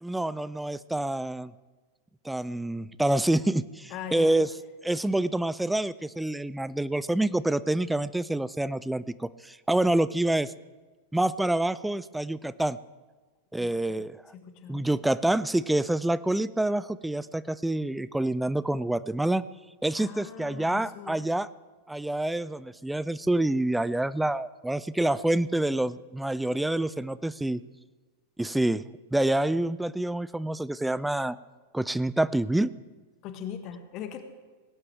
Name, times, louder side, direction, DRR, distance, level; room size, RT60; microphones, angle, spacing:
voice 1, 0.0-1.5 2.2-4.5 4.8-10.5 11.1-12.8 13.5-14.2 14.7-19.4 19.8-21.5 21.9-27.6 28.4-28.8 29.1-31.4 31.7-32.7, right 1 dB, 5° right, 17 dB, 0.4 m, -27 dB
voice 2, 3.9-4.4 5.2-5.3 13.6-14.0 14.3-14.8 20.0-21.2 33.2-34.2, left 8 dB, 40° left, 8 dB, 1.6 m, -40 dB
19.5 x 17.5 x 3.6 m, 1.3 s
figure-of-eight pair, 90°, 0 cm